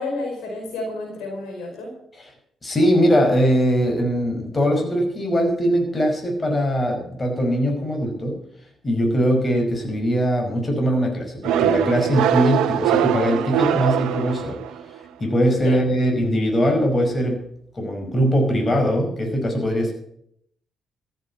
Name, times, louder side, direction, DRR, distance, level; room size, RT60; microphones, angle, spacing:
voice 1, 0.0-1.9 15.6-15.8, left 2 dB, 70° left, 0 dB, 4.8 m, -30 dB
voice 2, 2.6-8.4 8.8-14.6 15.2-17.4 17.7-19.9, equal, 35° left, 2 dB, 5.3 m, -21 dB
sound 1, 11.4-15.0, right 10 dB, 70° right, 0.8 m, -22 dB
14.5 x 8.2 x 8.1 m, 0.69 s
hypercardioid pair, 40°, 0 cm